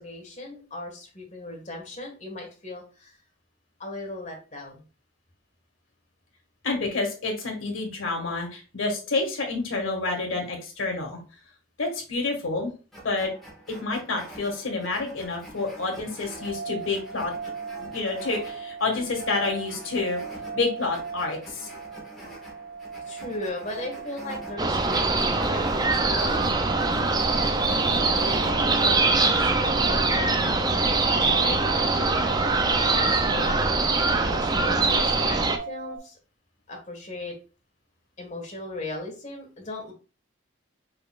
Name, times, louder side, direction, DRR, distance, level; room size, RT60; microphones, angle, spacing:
voice 1, 0.0-3.2 3.8-4.8 23.1-26.6 28.2-33.7 34.2-36.2 36.7-37.3 38.2-39.9, left 2 dB, 35° left, 1 dB, 1.6 m, -37 dB
voice 2, 6.6-11.2 11.8-12.7 13.0-13.3 13.8-17.3 17.8-20.2 20.5-21.7, left 3 dB, 85° left, 2 dB, 1.7 m, -28 dB
sound 1, 12.9-28.9, right 1 dB, ahead, 1.6 m, -44 dB
sound 2, 16.3-36.0, right 5 dB, 90° right, 2.8 m, -39 dB
sound 3, 24.6-35.6, right 3 dB, 20° right, 0.4 m, -23 dB
5.3 x 4.1 x 2.4 m, 0.34 s
head